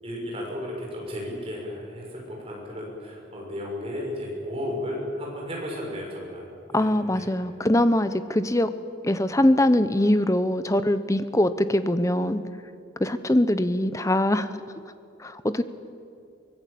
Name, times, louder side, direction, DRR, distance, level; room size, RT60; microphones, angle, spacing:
voice 1, 0.0-6.4 6.7-7.3, left 1 dB, 30° right, -2 dB, 6.5 m, -34 dB
voice 2, 6.7-8.7 9.0-12.4 13.0-14.5 15.2-15.6, left 1 dB, 15° left, 12 dB, 0.8 m, -22 dB
23.5 x 20.0 x 8.5 m, 2.4 s
head